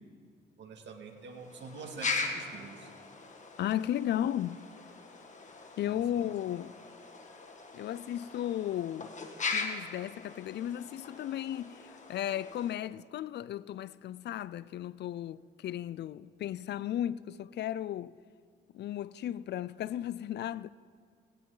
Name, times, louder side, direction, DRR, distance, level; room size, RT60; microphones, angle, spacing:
voice 1, 0.6-2.9 5.9-6.0, right 4 dB, 65° right, 2.1 m, -46 dB
sound 1, 1.2-12.8, left 4 dB, 35° left, 1.7 m, -40 dB
voice 2, 3.6-4.6 5.8-6.7 7.7-9.1 9.5-18.1 18.7-20.7, left 11 dB, 60° left, 0.4 m, -35 dB
18.5 x 17.0 x 3.9 m
cardioid pair, 90°, 20 cm